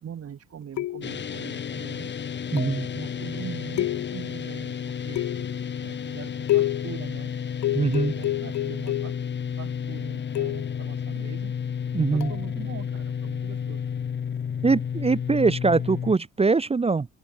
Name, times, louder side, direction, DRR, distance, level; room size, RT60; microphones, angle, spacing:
voice 1, 0.0-2.1 2.5-5.5 5.8-7.3 7.8-9.2 9.6-11.5 12.1-13.8, right 8 dB, 50° right, 2.6 m, -42 dB
sound 1, 0.8-1.3 2.6-2.9 3.8-4.4 5.2-5.7 6.5-7.0 7.6-9.3 10.4-10.8 12.2-12.4, left 15 dB, 70° left, 0.7 m, -28 dB
sound 2, 1.0-16.2, left 7 dB, 35° left, 0.9 m, -32 dB
voice 2, 2.5-2.9 7.7-8.1 11.9-12.3 14.6-17.1, right 4 dB, 20° right, 0.7 m, -22 dB
open air
cardioid pair, 90°, 30 cm